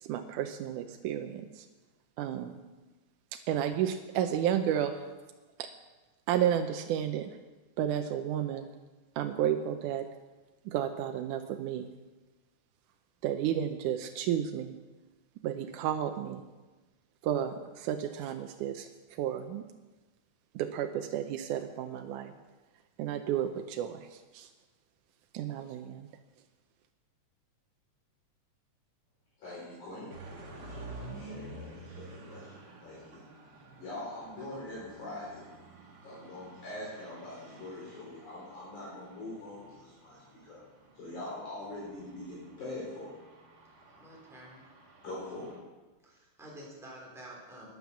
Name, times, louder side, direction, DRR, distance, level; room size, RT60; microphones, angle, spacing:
voice 1, 0.0-1.7 2.2-2.6 3.5-4.9 5.6-5.7 6.3-7.4 7.8-8.7 9.2-10.1 10.7-11.9 13.2-14.8 15.4-16.4 17.2-19.6 20.6-22.3 23.0-24.5 25.3-26.1, right 10 dB, 85° right, 6 dB, 2.2 m, -32 dB
voice 2, 29.4-32.5 32.8-33.2 33.8-35.5 36.0-40.6 41.0-43.1 45.0-45.5, left 2 dB, 70° left, -8 dB, 5.4 m, -43 dB
sound 1, 30.1-45.6, right 2 dB, 40° right, 1.8 m, -51 dB
voice 3, 44.0-44.6 46.0-47.8, right 1 dB, ahead, -4 dB, 3.4 m, -49 dB
12.0 x 10.5 x 7.0 m, 1.2 s
omnidirectional pair, 3.5 m